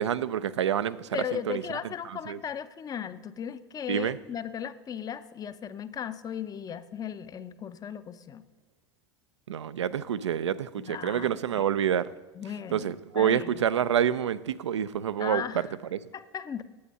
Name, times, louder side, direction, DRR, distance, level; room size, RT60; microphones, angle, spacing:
voice 1, 0.0-1.6 2.0-2.4 3.9-4.2 9.5-12.1 12.7-16.0, right 9 dB, 85° right, 15 dB, 0.4 m, -28 dB
voice 2, 1.1-8.4 10.8-11.7 12.4-13.6 15.2-15.7 16.1-16.6, left 8 dB, 25° left, 13 dB, 0.5 m, -37 dB
8.5 x 8.2 x 5.6 m, 1.2 s
hypercardioid pair, 80°, 15 cm